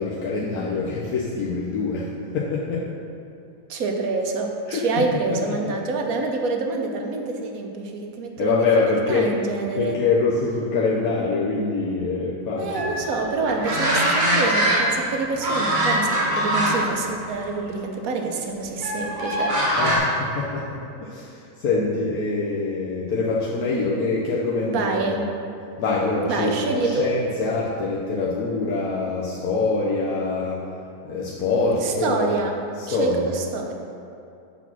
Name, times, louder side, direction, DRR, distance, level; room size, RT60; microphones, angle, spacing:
voice 1, 0.0-2.9 4.7-4.8 8.4-9.3 9.8-12.9 19.7-25.2 25.8-30.6 31.1-32.3 32.8-33.3, left 3 dB, 65° left, -5 dB, 1.2 m, -24 dB
voice 2, 3.7-10.0 12.6-19.5 24.7-25.3 26.3-27.1 31.8-32.6 32.9-33.7, right 3 dB, 65° right, 2 dB, 1.1 m, -27 dB
sound 1, 12.7-15.1 15.4-16.9 17.3-17.5 18.8-20.0, right 1 dB, 35° right, 1.1 m, -22 dB
6.9 x 4.1 x 6.0 m, 2.6 s
omnidirectional pair, 1.8 m